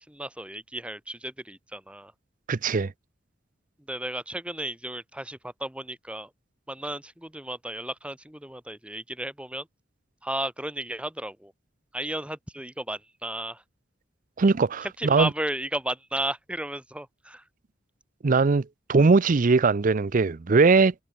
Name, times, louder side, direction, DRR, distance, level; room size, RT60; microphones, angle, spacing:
voice 1, 0.1-2.1 3.9-6.3 6.7-9.7 10.2-11.5 11.9-13.6 14.8-17.4, right 1 dB, 5° right, 4.2 m, -34 dB
voice 2, 2.5-2.9 14.4-15.3 18.2-20.9, right 4 dB, 45° right, 0.5 m, -20 dB
head